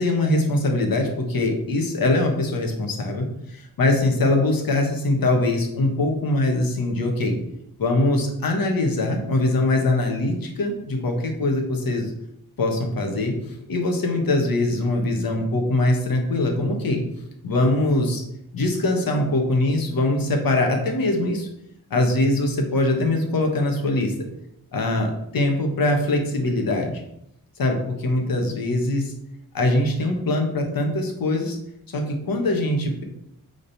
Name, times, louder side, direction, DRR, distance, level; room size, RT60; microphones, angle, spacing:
voice 1, 0.0-7.4 7.8-12.1 12.6-17.0 17.4-18.2 18.5-21.5 21.9-24.1 24.7-27.0 27.6-29.1 29.5-31.6 31.9-33.0, left 2 dB, 70° left, 2 dB, 1.4 m, -22 dB
8.8 x 4.0 x 4.1 m, 0.76 s
wide cardioid pair, 175°, 36 cm